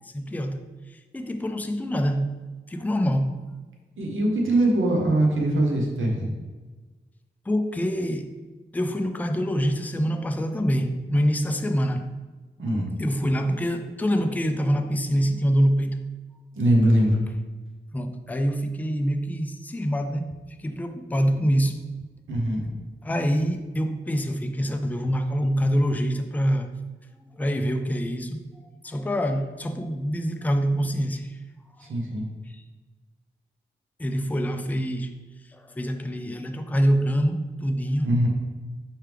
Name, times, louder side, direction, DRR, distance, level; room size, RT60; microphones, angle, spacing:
voice 1, 0.0-2.3 2.7-3.4 7.5-8.3 8.7-12.1 12.6-16.0 17.9-21.8 23.0-26.7 27.4-28.5 28.8-31.4 31.8-31.9 32.5-32.6 34.0-35.1 35.5-38.1, equal, 10° left, 6 dB, 0.4 m, -25 dB
voice 2, 4.0-6.3 12.6-12.9 16.6-17.2 22.3-22.7 31.8-32.3 38.0-38.3, right 1 dB, 90° right, 0 dB, 0.9 m, -22 dB
4.5 x 3.3 x 3.3 m, 1.3 s
cardioid pair, 55°, 20 cm